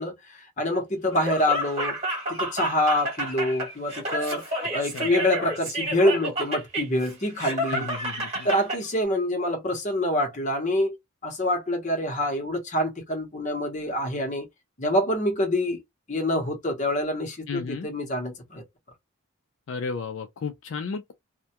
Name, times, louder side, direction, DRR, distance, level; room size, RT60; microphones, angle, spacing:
voice 1, 0.0-2.0 2.3-7.9 8.4-11.0 11.2-14.5 14.8-15.8 16.1-18.6, left 1 dB, 35° left, 0.8 m, -26 dB
Laughter, 1.1-8.8, right 1 dB, 30° right, 1.2 m, -30 dB
voice 2, 7.7-8.5 17.5-17.9 19.7-21.1, left 5 dB, 65° left, 0.3 m, -33 dB
2.2 x 2.1 x 2.7 m
head